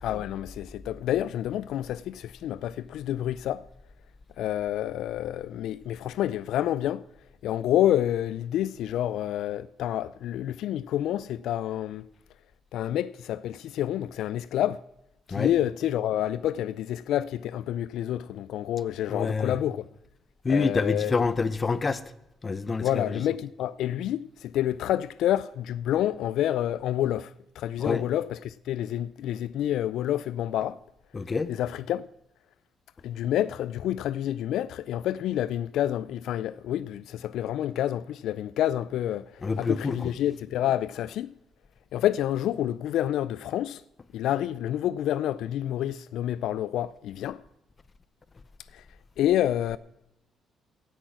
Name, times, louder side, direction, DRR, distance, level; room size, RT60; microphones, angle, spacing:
voice 1, 0.0-3.6 4.4-7.0 7.4-12.0 12.7-14.8 15.3-19.9 20.5-21.3 22.8-30.8 31.5-32.1 33.0-39.2 39.6-41.3 41.9-43.8 44.1-47.4 48.7-48.8 49.2-49.8, left 12 dB, 80° left, 0.3 m, -28 dB
voice 2, 19.1-19.6 20.4-22.0 22.4-23.2 27.8-28.0 31.1-31.5 39.4-40.1, left 4 dB, 35° left, 0.7 m, -27 dB
16.0 x 6.3 x 5.9 m
cardioid pair, 90°, 0 cm